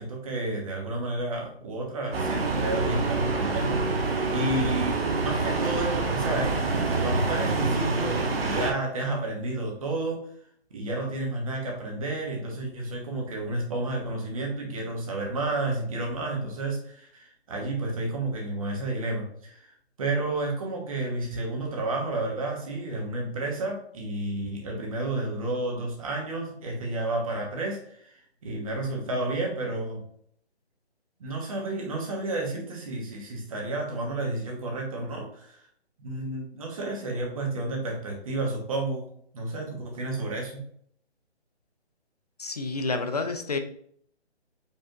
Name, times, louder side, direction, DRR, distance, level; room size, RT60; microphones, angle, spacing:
voice 1, 0.0-4.9 5.2-6.6 7.0-10.2 10.7-19.7 20.0-28.1 28.4-30.0 31.2-35.6 36.0-39.0 39.3-40.6, right 2 dB, 30° right, 0 dB, 1.2 m, -31 dB
sound 1, 2.1-8.7, right 3 dB, 60° right, 1.1 m, -26 dB
voice 2, 42.4-43.6, left 3 dB, 40° left, 7 dB, 0.4 m, -29 dB
5.3 x 3.4 x 2.5 m, 0.64 s
figure-of-eight pair, 160°, 34 cm